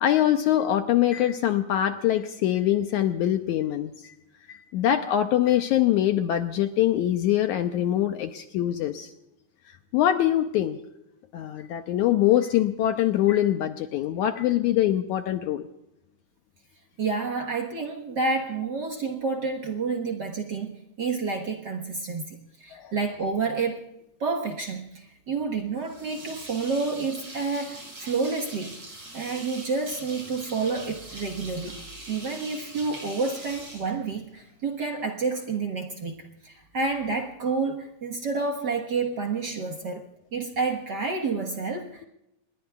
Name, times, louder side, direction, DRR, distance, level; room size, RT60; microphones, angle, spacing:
voice 1, 0.0-3.9 4.5-9.1 9.9-10.8 11.3-15.7 22.7-22.9, left 12 dB, 75° left, 7 dB, 1.9 m, -23 dB
voice 2, 17.0-23.9 24.2-28.8 29.1-31.8 32.1-42.0, right 4 dB, 65° right, 1 dB, 1.0 m, -29 dB
sound 1, 25.8-34.6, right 1 dB, 45° right, 7.7 m, -43 dB
27.5 x 21.5 x 2.3 m, 0.86 s
omnidirectional pair, 4.0 m